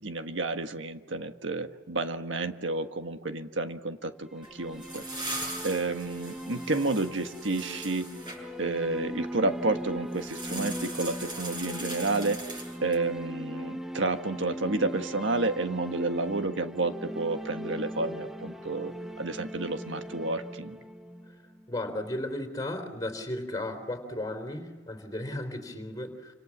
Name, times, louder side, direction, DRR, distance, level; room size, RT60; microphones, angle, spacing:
voice 1, 0.0-8.1 8.6-20.8, right 3 dB, 80° right, 7 dB, 1.5 m, -31 dB
sound 1, 4.2-22.1, equal, ahead, 1.0 m, -39 dB
sound 2, 4.4-8.4 10.1-13.1, right 2 dB, 25° right, 7.2 m, -40 dB
voice 2, 21.7-26.3, left 1 dB, 20° left, 5 dB, 3.8 m, -35 dB
28.5 x 26.5 x 7.3 m, 1.3 s
head